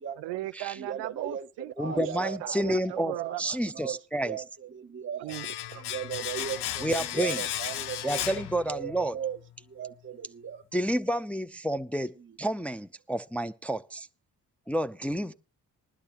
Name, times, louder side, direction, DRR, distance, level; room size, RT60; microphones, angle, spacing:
voice 1, 0.2-3.6 5.2-5.9, right 17 dB, 80° right, 0.5 m, -38 dB
voice 2, 0.8-1.5 1.8-2.8 3.1-3.4 3.7-5.4 5.9-8.2 8.7-10.6 11.1-11.2 12.2-12.4, right 8 dB, 30° right, 0.9 m, -37 dB
voice 3, 1.8-3.1 3.4-4.4 6.8-7.4 8.0-9.2 10.7-14.0 14.7-15.3, right 1 dB, 5° left, 0.6 m, -30 dB
Domestic sounds home sounds, 5.3-9.1 9.4-9.5, left 12 dB, 70° left, 0.7 m, -35 dB
19.5 x 11.5 x 2.9 m
hypercardioid pair, 40°, 41 cm